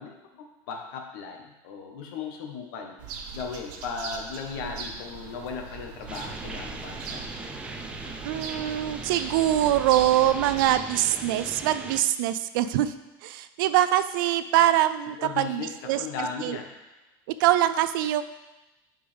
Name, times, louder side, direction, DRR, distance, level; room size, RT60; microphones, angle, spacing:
voice 1, 0.0-7.2 15.2-16.7, left 5 dB, 75° left, 3 dB, 1.3 m, -37 dB
sound 1, 3.0-10.8, right 5 dB, 70° right, 1.1 m, -40 dB
sound 2, 6.1-12.0, right 3 dB, 10° right, 0.5 m, -39 dB
voice 2, 8.2-12.9 13.2-16.6 17.4-18.2, right 13 dB, 90° right, 12 dB, 0.5 m, -24 dB
10.0 x 5.2 x 3.5 m, 1.0 s
cardioid pair, 170°, 11 cm